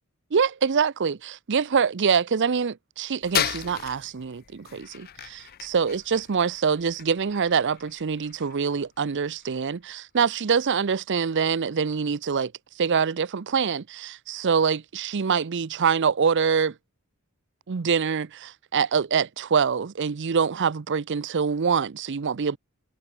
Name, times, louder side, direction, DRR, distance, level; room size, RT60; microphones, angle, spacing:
voice 1, 0.3-16.8 17.7-22.6, right 6 dB, 55° right, 0.6 m, -25 dB
sound 1, 3.2-9.9, left 10 dB, 45° left, 0.5 m, -35 dB
head